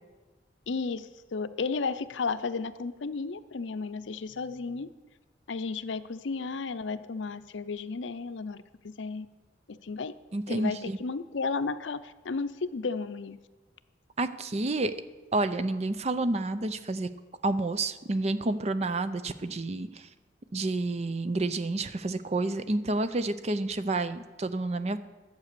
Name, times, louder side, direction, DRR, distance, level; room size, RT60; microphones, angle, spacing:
voice 1, 0.7-4.9 5.5-8.6 8.8-9.3 9.7-10.1 10.5-13.4, left 4 dB, 80° left, 13 dB, 0.6 m, -33 dB
voice 2, 10.3-11.0 14.2-14.9 15.3-17.1 17.4-20.1 20.5-25.0, right 2 dB, 35° right, 12 dB, 0.5 m, -29 dB
11.5 x 8.1 x 6.8 m, 1.2 s
head